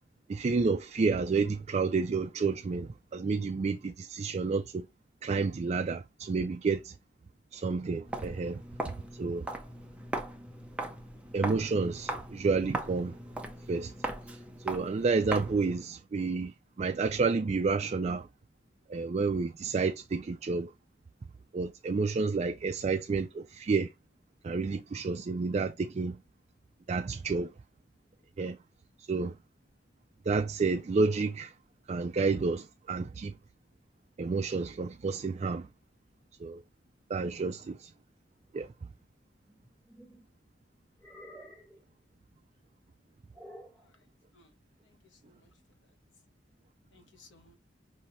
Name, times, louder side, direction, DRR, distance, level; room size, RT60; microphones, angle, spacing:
voice 1, 0.3-4.9 5.2-6.9 7.5-8.6 9.2-9.5 11.3-13.2 13.7-13.9 14.6-18.3 18.9-20.7 21.5-23.9 24.4-26.2 26.9-27.5 28.4-28.6 29.0-29.3 30.3-31.5 31.9-33.3 34.2-35.7 36.4-36.6 37.1-37.9 38.5-38.7, right 4 dB, 40° right, 0.3 m, -30 dB
Walk footsteps, 8.0-15.7, right 1 dB, 5° right, 0.7 m, -39 dB
sound 1, 39.5-40.3 41.0-41.8 43.3-43.9, equal, 10° left, 1.5 m, -51 dB
voice 2, 44.8-45.5 46.9-47.6, left 3 dB, 85° left, 1.3 m, -61 dB
5.5 x 2.7 x 3.0 m
head